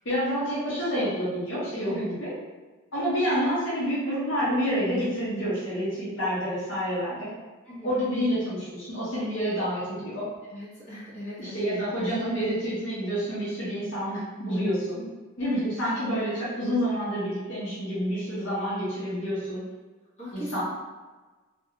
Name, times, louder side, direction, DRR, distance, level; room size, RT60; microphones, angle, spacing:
voice 1, 0.0-2.3 2.9-7.3 7.8-10.3 11.4-15.0 15.4-19.6 20.3-20.6, equal, 65° left, -9 dB, 0.8 m, -28 dB
voice 2, 7.6-8.0 10.4-11.6 16.7-16.9 20.2-20.6, equal, 35° left, -10 dB, 1.0 m, -39 dB
2.4 x 2.2 x 2.8 m, 1.3 s
head